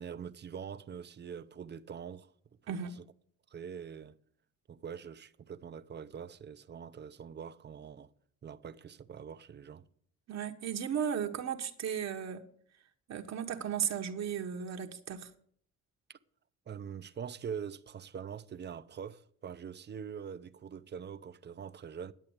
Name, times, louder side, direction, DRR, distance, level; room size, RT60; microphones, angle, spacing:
voice 1, 0.0-2.3 2.6-3.0 3.5-4.2 4.7-8.1 8.4-9.9 16.1-16.2 16.7-22.1, right 7 dB, 35° right, 0.7 m, -44 dB
voice 2, 10.3-12.4 13.1-15.3, right 8 dB, 60° right, 1.3 m, -35 dB
10.5 x 8.4 x 8.0 m
cardioid pair, 90°, 30 cm